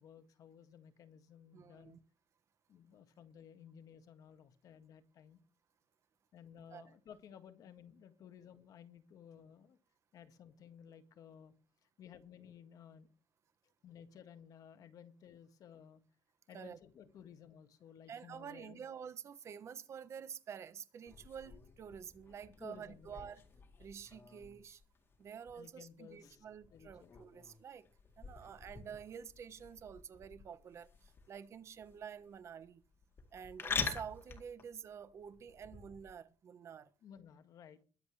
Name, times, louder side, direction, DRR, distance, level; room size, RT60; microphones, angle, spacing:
voice 1, 0.0-2.0 2.7-5.4 6.3-9.8 10.1-11.5 11.8-13.1 13.8-16.0 16.5-18.8 22.6-23.2 25.5-26.4 26.7-27.2 37.0-37.8, left 8 dB, 55° left, 1.7 m, -56 dB
voice 2, 1.5-2.0 6.7-6.9 16.5-16.8 18.1-23.4 23.8-24.8 25.2-27.8 28.2-32.8 33.3-36.9, right 7 dB, 40° right, 1.2 m, -49 dB
sound 1, 21.1-36.1, left 5 dB, 30° left, 2.1 m, -47 dB
22.0 x 8.0 x 3.3 m
cardioid pair, 175°, 8 cm